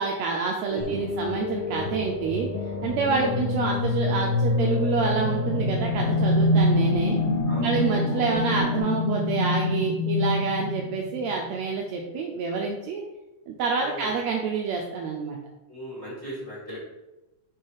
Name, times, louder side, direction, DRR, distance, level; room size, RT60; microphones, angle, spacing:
voice 1, 0.0-2.5 2.8-7.2 7.6-13.0 13.5-15.4, right 5 dB, 85° right, 1 dB, 1.5 m, -27 dB
voice 2, 0.7-1.1 3.2-3.3 7.5-8.0 13.8-14.1 15.7-16.8, right 1 dB, 25° left, -7 dB, 1.8 m, -38 dB
sound 1, 0.8-8.8, left 2 dB, 80° left, 1.2 m, -28 dB
sound 2, 5.1-11.5, left 1 dB, 65° right, 1.7 m, -25 dB
4.8 x 4.6 x 4.7 m, 1.0 s
omnidirectional pair, 3.7 m